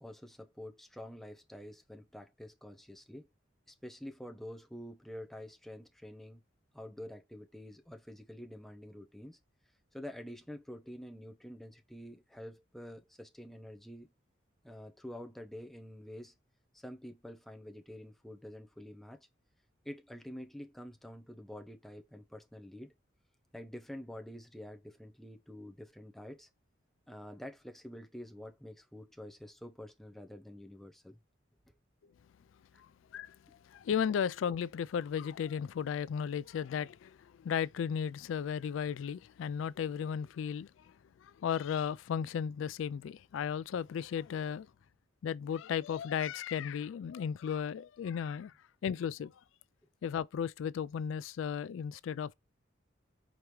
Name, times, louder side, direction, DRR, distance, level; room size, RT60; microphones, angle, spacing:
voice 1, 0.0-3.3 3.7-6.4 6.7-9.4 9.9-14.1 14.6-16.3 16.7-19.3 19.8-22.9 23.5-26.5 27.1-31.2 31.7-31.8 32.7-32.8, equal, ahead, 0.6 m, -48 dB
voice 2, 33.6-40.9 41.2-44.7 45.2-48.5 48.8-49.3 50.0-52.3, left 7 dB, 85° left, 0.3 m, -35 dB
5.1 x 2.9 x 3.1 m
head